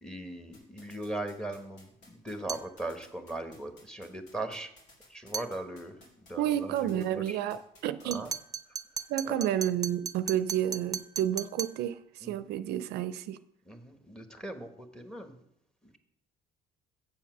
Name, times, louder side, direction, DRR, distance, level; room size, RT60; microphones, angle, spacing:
voice 1, 0.0-4.7 5.1-7.4 8.0-8.3 8.7-8.8 9.2-9.5 12.2-12.5 13.6-15.4, right 2 dB, 5° left, 1.2 m, -39 dB
sound 1, 0.5-8.3, left 2 dB, 85° left, 3.3 m, -56 dB
sound 2, 2.5-2.7 5.3-5.5 8.1-11.8, right 7 dB, 20° right, 0.5 m, -37 dB
voice 2, 6.4-8.2 9.1-13.4, right 11 dB, 80° right, 0.5 m, -30 dB
7.7 x 7.1 x 6.0 m
cardioid pair, 110°, 17 cm